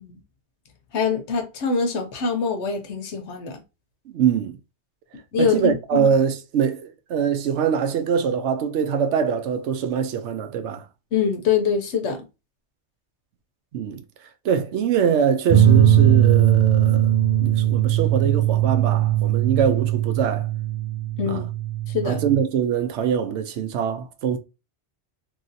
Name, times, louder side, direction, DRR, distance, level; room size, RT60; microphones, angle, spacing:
voice 1, 0.9-3.6 5.3-6.1 11.1-12.2 21.2-21.5 21.9-22.2, left 5 dB, 80° left, 1.0 m, -24 dB
voice 2, 4.1-4.6 5.4-10.8 13.7-14.0 14.4-17.1 17.4-20.5 21.3-21.4 22.1-24.4, right 7 dB, 85° right, 0.9 m, -23 dB
sound 1, 15.5-22.4, right 11 dB, 60° right, 0.4 m, -19 dB
3.1 x 2.8 x 2.6 m
omnidirectional pair, 1.2 m